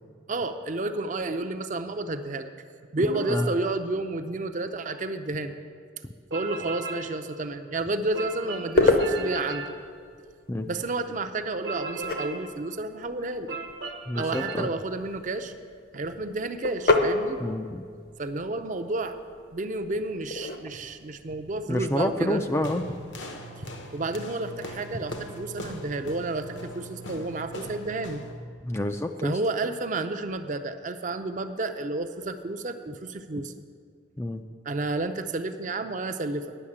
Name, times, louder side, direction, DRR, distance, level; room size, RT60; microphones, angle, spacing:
voice 1, 0.3-2.5 2.9-5.6 6.3-9.7 10.7-13.6 14.2-15.5 15.9-17.4 18.2-19.2 19.5-22.4 23.6-28.2 29.2-33.6 34.6-36.6, right 2 dB, 40° right, 8 dB, 0.5 m, -31 dB
sound 1, 3.0-3.6 6.3-7.2 8.1-9.8 11.6-12.5 13.5-14.6, right 4 dB, 65° right, 0.8 m, -35 dB
sound 2, 7.9-23.0, left 2 dB, 50° left, 0.8 m, -31 dB
voice 2, 14.1-14.7 17.4-17.8 21.7-22.8 28.6-29.4 34.2-34.4, left 1 dB, 15° left, 6 dB, 0.3 m, -28 dB
sound 3, 22.6-28.4, equal, 70° left, 1.0 m, -40 dB
10.0 x 6.5 x 8.5 m, 2.1 s
head